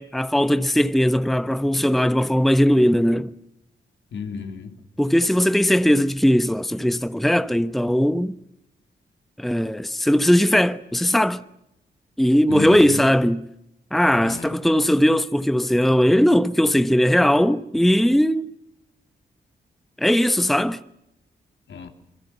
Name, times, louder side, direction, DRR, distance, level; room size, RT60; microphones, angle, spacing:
voice 1, 0.0-3.3 5.0-8.4 9.4-11.4 12.2-13.4 13.9-18.5 20.0-20.8, equal, ahead, 1.0 m, -19 dB
voice 2, 4.1-4.7 12.5-13.1 14.2-14.5 21.7-21.9, left 6 dB, 75° left, 2.9 m, -33 dB
27.5 x 22.0 x 6.9 m
supercardioid pair, 45°, 20 cm